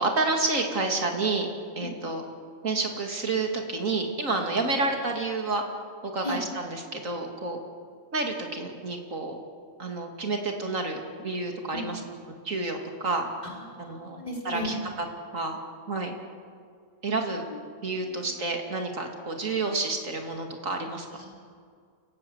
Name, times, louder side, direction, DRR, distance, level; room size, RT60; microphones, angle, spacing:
voice 1, 0.0-1.5 1.8-2.2 2.6-5.6 6.0-7.6 8.1-9.4 9.8-12.0 12.4-13.3 13.8-14.2 14.4-15.1 15.3-15.6 15.9-16.1 17.0-17.4 17.8-21.1, right 3 dB, 85° right, 3 dB, 3.1 m, -29 dB
voice 2, 13.4-14.7 17.5-17.6 18.0-18.3 21.2-21.4, left 1 dB, 30° left, -1 dB, 4.0 m, -37 dB
28.5 x 17.0 x 8.1 m, 2.1 s
omnidirectional pair, 1.3 m